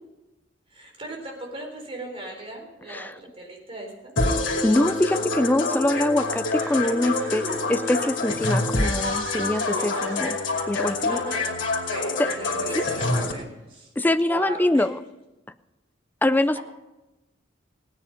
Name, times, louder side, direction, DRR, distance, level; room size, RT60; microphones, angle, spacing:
voice 1, 0.7-4.1 9.8-10.1 11.1-11.5 11.9-13.9 14.2-14.8 16.5-16.6, right 1 dB, 30° right, 1 dB, 4.0 m, -37 dB
sound 1, 4.2-13.3, left 2 dB, 85° left, 2.6 m, -26 dB
voice 2, 4.6-10.4 10.7-11.2 12.2-12.3 12.7-12.8 14.0-15.0 16.2-16.6, left 1 dB, 10° left, 11 dB, 0.4 m, -24 dB
sound 2, 6.3-10.4 10.7-11.1 12.6-12.7 12.9-13.0 13.4-13.5, right 2 dB, 80° right, 6.3 m, -43 dB
17.5 x 9.8 x 5.4 m, 1.0 s
head